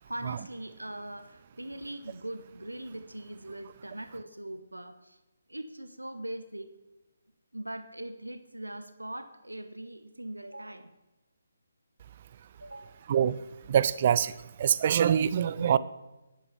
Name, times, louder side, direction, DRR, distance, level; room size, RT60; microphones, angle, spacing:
voice 1, 0.0-5.2 5.5-6.7 7.5-10.9 12.6-13.0, right 1 dB, 80° right, 10 dB, 1.0 m, -41 dB
voice 2, 13.7-14.3 14.6-15.8, right 9 dB, 35° right, 17 dB, 0.4 m, -24 dB
11.0 x 8.4 x 7.2 m, 1.0 s
figure-of-eight pair, 140°, 0 cm